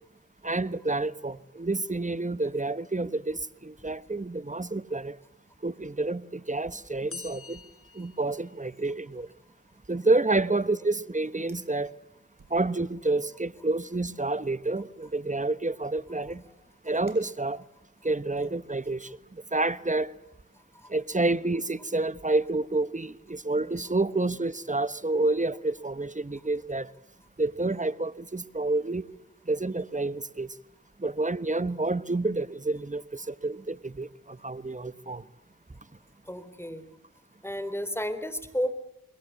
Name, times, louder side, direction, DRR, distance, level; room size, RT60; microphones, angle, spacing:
voice 1, 0.4-5.2 5.6-7.6 7.9-9.3 9.9-11.9 12.5-16.4 16.8-17.6 18.0-20.1 20.9-26.9 27.4-29.0 29.5-30.5 31.0-35.2, right 2 dB, 20° right, 15 dB, 1.2 m, -29 dB
sound 1, 7.1-9.0, left 5 dB, 40° left, 1.1 m, -46 dB
Fire, 11.5-11.8 12.3-13.1 13.5-13.8 14.5-17.9, right 3 dB, 65° right, 7.4 m, -62 dB
voice 2, 36.3-36.8 37.4-38.7, equal, 5° left, 12 dB, 3.6 m, -32 dB
29.0 x 22.0 x 8.3 m, 0.80 s
cardioid pair, 40°, 34 cm